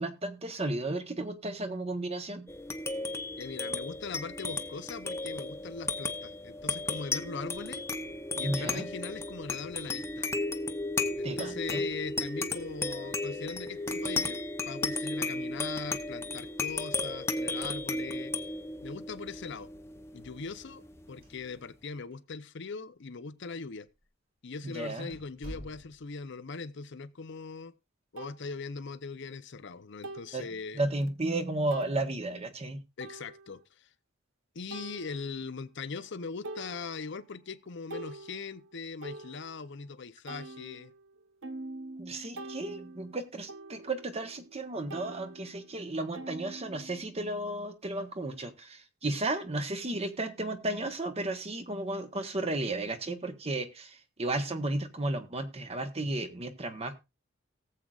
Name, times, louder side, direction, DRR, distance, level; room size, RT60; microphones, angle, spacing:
voice 1, 0.0-2.5 8.4-8.9 11.2-11.8 24.6-25.1 30.3-30.4 30.7-32.8 42.0-57.0, right 2 dB, 30° right, 1.1 m, -33 dB
sound 1, 2.5-21.3, left 2 dB, 15° left, 0.7 m, -35 dB
voice 2, 3.4-7.9 8.3-10.3 11.2-18.3 18.8-19.7 20.1-23.9 24.4-27.7 28.1-30.8 33.0-33.9 34.5-40.9 56.0-56.1, left 4 dB, 60° left, 0.7 m, -40 dB
sound 2, 21.1-21.9 22.1-22.2 23.0-23.1 23.8-24.0 24.5-24.6 25.1-26.2, equal, 50° right, 5.0 m, -47 dB
sound 3, 27.3-27.4 28.2-28.4 30.0-30.4 31.0-31.1 31.7-32.0 33.0-33.6 34.7-35.5 36.0-36.1 36.4-37.3 37.6-39.8 40.3-44.6 44.9-47.2, right 2 dB, 80° right, 0.9 m, -45 dB
18.0 x 7.6 x 2.4 m
head